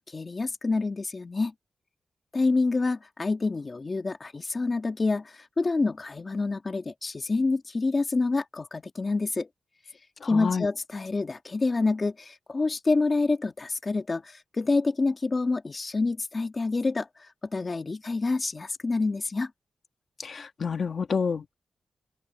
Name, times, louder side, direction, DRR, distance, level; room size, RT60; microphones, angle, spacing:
voice 1, 0.0-1.5 2.3-9.5 10.2-17.1 17.5-19.5, left 3 dB, 35° left, 2.8 m, -27 dB
voice 2, 10.2-10.7 20.2-21.5, left 5 dB, 55° left, 2.2 m, -29 dB
open air
wide cardioid pair, 120°, 0 cm